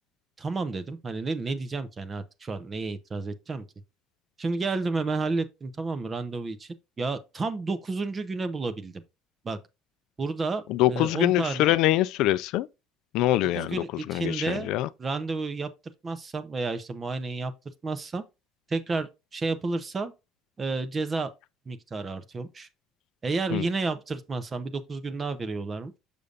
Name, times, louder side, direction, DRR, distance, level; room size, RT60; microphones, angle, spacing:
voice 1, 0.4-3.6 4.4-9.0 9.4-9.6 10.2-11.7 13.5-14.7 15.0-15.7 16.0-17.5 17.8-18.2 18.7-20.1 20.6-21.3 21.7-22.7 23.2-26.0, right 3 dB, 20° right, 0.7 m, -31 dB
voice 2, 10.7-12.7 13.1-13.8 14.1-14.9 23.5-23.6, left 15 dB, 60° left, 0.3 m, -24 dB
6.7 x 6.6 x 2.4 m
cardioid pair, 165°, 0 cm